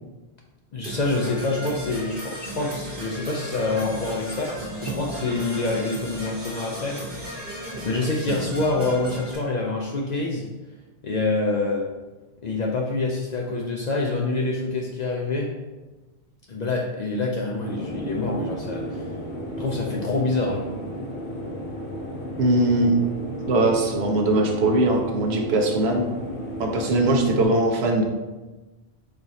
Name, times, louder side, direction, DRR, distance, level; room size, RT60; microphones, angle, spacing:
voice 1, 0.7-7.0 7.8-10.5 11.0-11.9 12.4-15.5 16.5-19.0 19.6-20.6, left 2 dB, 55° left, -1 dB, 0.5 m, -26 dB
Percussion / Brass instrument, 0.8-9.4, right 1 dB, 55° right, 1.4 m, -35 dB
sound 1, 17.6-27.5, equal, 85° left, 1.2 m, -34 dB
voice 2, 22.4-22.9 23.5-26.1 26.6-28.0, right 2 dB, 75° right, 2 dB, 0.9 m, -21 dB
4.6 x 2.5 x 4.0 m, 1.2 s
omnidirectional pair, 1.1 m